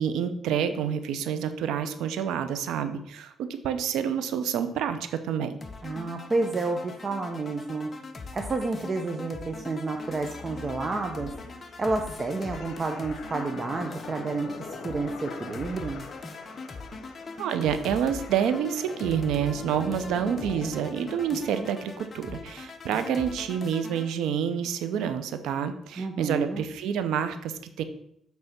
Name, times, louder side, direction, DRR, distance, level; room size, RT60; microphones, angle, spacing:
voice 1, 0.0-5.6 17.4-27.8, right 8 dB, 85° right, 10 dB, 0.7 m, -28 dB
sound 1, 5.6-24.1, left 3 dB, 35° left, 0.9 m, -41 dB
voice 2, 5.8-7.9 8.3-11.3 11.8-14.6 14.8-16.0 26.0-26.7, right 3 dB, 35° right, 4 dB, 0.8 m, -30 dB
sound 2, 9.9-21.6, left 4 dB, 65° left, 1.0 m, -44 dB
8.0 x 3.5 x 5.9 m, 0.73 s
cardioid pair, 90°, 0 cm